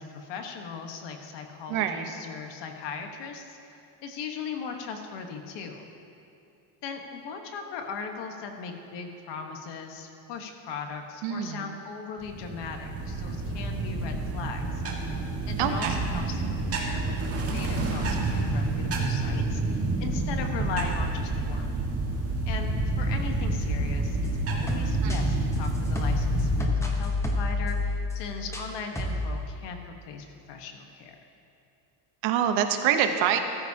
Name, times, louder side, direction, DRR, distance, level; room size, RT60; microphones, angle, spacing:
voice 1, 0.0-3.6 4.0-5.9 6.8-14.8 15.5-21.7 22.4-22.7 23.0-24.2 24.5-31.2, left 5 dB, 60° left, 4 dB, 1.4 m, -38 dB
voice 2, 1.7-2.1 11.2-11.6 15.6-15.9 25.0-25.4 32.2-33.4, right 9 dB, 70° right, 6 dB, 1.1 m, -26 dB
sound 1, 12.2-26.7, right 2 dB, 30° right, 1.7 m, -29 dB
sound 2, 24.2-28.7 29.0-29.4, left 2 dB, 5° left, 1.0 m, -29 dB
14.5 x 13.5 x 2.9 m, 2.7 s
cardioid pair, 140°, 49 cm